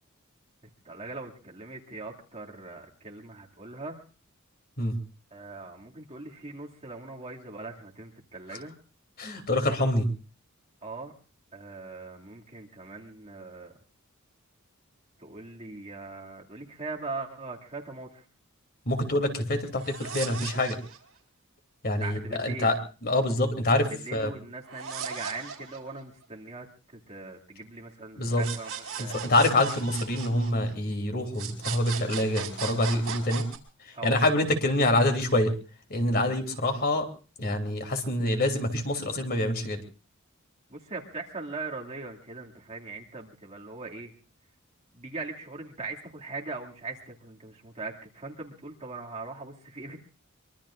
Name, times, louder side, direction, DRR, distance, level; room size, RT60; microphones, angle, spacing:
voice 1, 0.8-4.0 5.3-8.8 10.8-11.1 11.5-13.7 15.2-18.2 22.0-22.7 23.9-29.3 33.9-34.2 40.7-44.1 44.9-50.1, right 3 dB, 30° right, -1 dB, 2.3 m, -40 dB
voice 2, 9.2-10.1 18.9-20.8 21.8-22.8 23.0-24.3 28.2-28.5 29.0-33.4 33.8-35.5 35.9-37.1 37.4-39.8, left 1 dB, 50° left, 5 dB, 3.0 m, -26 dB
sound 1, 19.7-21.2 24.6-26.2 28.4-30.9 31.3-33.6, right 7 dB, 70° right, 4.1 m, -37 dB
24.5 x 23.5 x 2.5 m, 0.36 s
head